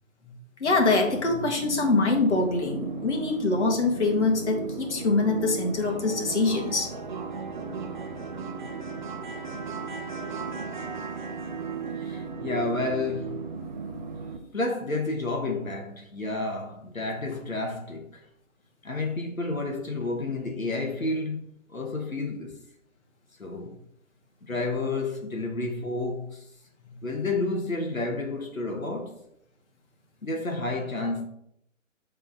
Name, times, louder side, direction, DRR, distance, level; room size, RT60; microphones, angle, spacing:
voice 1, 0.6-6.9, left 3 dB, 60° left, 1.6 m, -24 dB
sound 1, 0.7-14.4, right 5 dB, 35° right, 0.7 m, -36 dB
voice 2, 11.9-13.4 14.5-18.2 18.8-21.4 21.7-22.6 23.4-23.8 24.4-26.4 27.0-29.2 30.2-31.3, left 2 dB, 90° left, 1.2 m, -30 dB
6.9 x 3.8 x 4.1 m
figure-of-eight pair, 140°, 40 cm